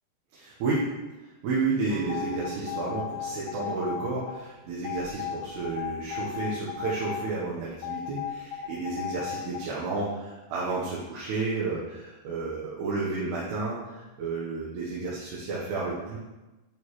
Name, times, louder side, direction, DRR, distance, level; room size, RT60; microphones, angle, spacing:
voice 1, 0.3-0.8 1.2-16.2, right 3 dB, 80° right, -6 dB, 3.2 m, -31 dB
sound 1, 1.9-5.7, right 3 dB, 55° right, 3.6 m, -41 dB
sound 2, 2.1-4.4 4.8-7.3 7.8-9.6, left 10 dB, 80° left, 2.4 m, -35 dB
8.8 x 6.3 x 3.1 m, 1.1 s
omnidirectional pair, 4.8 m